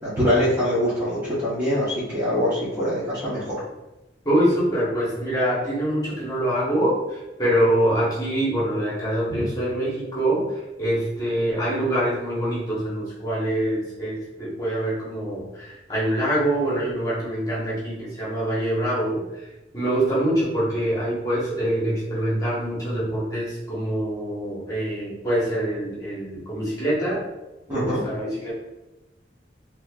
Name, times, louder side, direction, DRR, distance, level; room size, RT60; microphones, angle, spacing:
voice 1, 0.0-3.6 9.3-9.4 27.7-28.0, equal, 15° right, -13 dB, 1.0 m, -24 dB
voice 2, 4.2-10.5 10.8-19.5 19.7-27.3 27.7-28.5, right 1 dB, 20° left, -7 dB, 1.2 m, -25 dB
4.2 x 2.8 x 2.3 m, 1.0 s
head